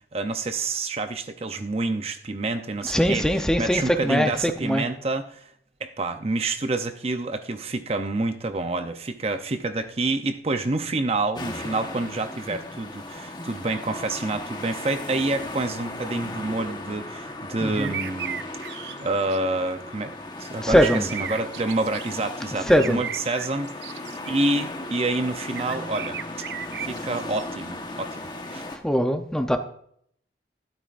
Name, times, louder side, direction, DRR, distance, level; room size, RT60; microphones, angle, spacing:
voice 1, 0.1-3.3 3.6-5.5 5.8-18.4 19.0-24.0 24.3-26.2 26.8-28.2 28.5-28.6, right 2 dB, 35° right, 8 dB, 0.6 m, -28 dB
voice 2, 2.8-4.8 17.6-17.9 20.6-21.1 22.7-23.0 28.8-29.6, equal, 5° left, 6 dB, 0.7 m, -21 dB
sound 1, 11.3-28.8, left 2 dB, 25° left, 1.2 m, -36 dB
sound 2, 17.7-19.4 20.7-22.2 22.7-24.5 25.5-27.4, right 8 dB, 75° right, 0.6 m, -36 dB
12.5 x 12.5 x 2.5 m, 0.65 s
head